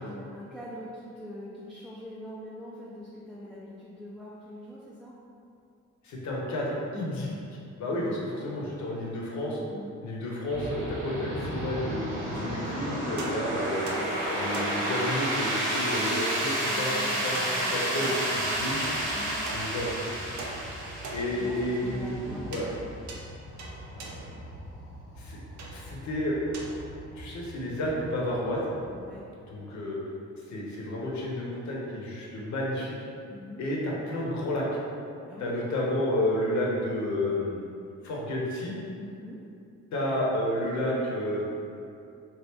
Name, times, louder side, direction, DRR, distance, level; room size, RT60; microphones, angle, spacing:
voice 1, 0.0-5.1 7.8-8.2 8.5-8.8 9.7-10.0 13.3-14.0 16.6-18.2 19.1-20.0 21.3-22.7 28.8-29.2 33.3-33.6 35.3-35.5 39.0-39.4, left 1 dB, ahead, -8 dB, 0.4 m, -44 dB
voice 2, 6.0-7.4 7.8-9.6 10.0-13.9 14.3-16.9 17.2-17.4 17.7-18.8 19.5-19.9 21.1-22.7 23.9-24.3 25.2-25.4 25.7-26.4 27.2-28.6 29.5-30.0 30.5-32.9 33.6-34.7 35.4-37.6 38.0-38.7 39.9-41.4, left 1 dB, 65° left, -3 dB, 0.8 m, -31 dB
sound 1, 10.5-29.1, right 1 dB, 90° right, 1.2 m, -32 dB
sound 2, 12.3-12.8 13.2-15.1 17.3-18.5 18.8-20.1 20.4-21.6 22.5-22.8 23.1-24.3 25.6-25.9 26.5-26.8, right 3 dB, 70° right, 0.6 m, -42 dB
3.0 x 2.4 x 3.4 m, 2.6 s
cardioid pair, 90°, 30 cm